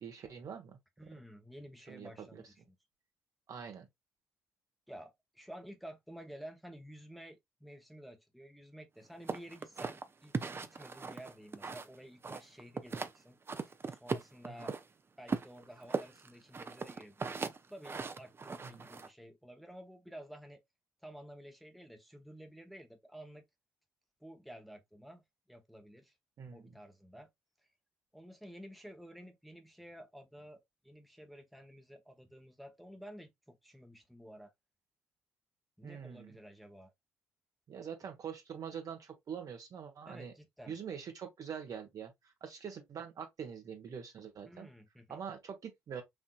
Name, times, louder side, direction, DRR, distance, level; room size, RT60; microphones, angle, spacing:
voice 1, 0.0-0.8 1.9-2.4 3.5-3.9 14.5-14.7 18.6-18.9 26.4-26.7 35.8-36.3 37.7-40.3 40.7-44.7 45.1-46.0, right 7 dB, 55° right, 1.2 m, -44 dB
voice 2, 1.0-2.8 4.9-13.4 13.9-14.8 15.2-20.6 21.0-23.4 24.2-26.2 26.5-27.3 28.1-34.5 35.8-36.9 40.1-40.7 44.5-45.2, equal, ahead, 0.8 m, -52 dB
sound 1, 9.3-12.0 12.2-13.2 13.5-14.8 15.3-19.1, right 4 dB, 30° right, 0.5 m, -38 dB
4.8 x 2.7 x 2.3 m
figure-of-eight pair, 40°, 7 cm